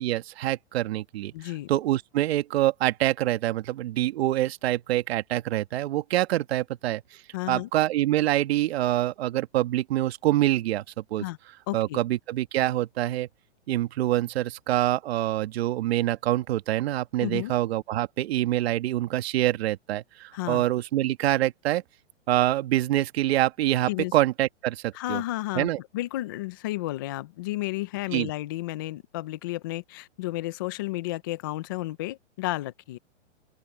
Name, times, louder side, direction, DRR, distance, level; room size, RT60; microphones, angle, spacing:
voice 1, 0.0-1.3 1.7-7.0 7.5-10.8 11.1-11.2 11.7-13.3 13.7-21.8 22.3-25.2 25.5-25.8 28.1-28.3, right 14 dB, 55° right, 1.7 m, -25 dB
voice 2, 1.3-1.7 7.3-7.7 11.2-11.4 11.7-12.0 17.2-17.5 20.3-20.6 23.9-24.1 24.9-33.0, left 17 dB, 20° left, 0.3 m, -32 dB
open air
hypercardioid pair, 145°, 37 cm